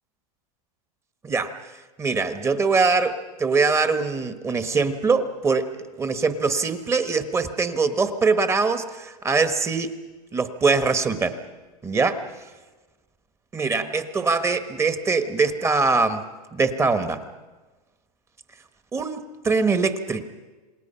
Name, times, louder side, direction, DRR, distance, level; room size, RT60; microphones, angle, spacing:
voice 1, 1.2-1.5 2.0-5.7 6.0-9.9 10.3-11.4 11.8-12.2 13.5-16.2 16.5-17.2 18.9-20.2, right 4 dB, 15° right, 10 dB, 1.2 m, -22 dB
27.5 x 20.5 x 5.6 m, 1.2 s
supercardioid pair, 145°, 20 cm